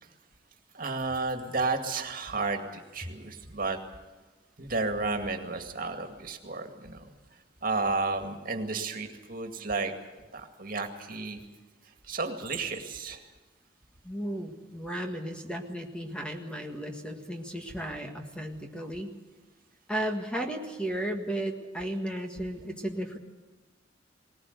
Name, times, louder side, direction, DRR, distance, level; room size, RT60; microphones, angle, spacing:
voice 1, 0.7-3.8 4.6-7.1 7.6-9.9 10.3-11.4 12.0-13.2, right 3 dB, 50° right, 6 dB, 2.2 m, -32 dB
voice 2, 14.0-19.1 19.9-23.2, right 1 dB, 5° left, 3 dB, 1.7 m, -34 dB
19.5 x 19.5 x 8.1 m, 1.3 s
head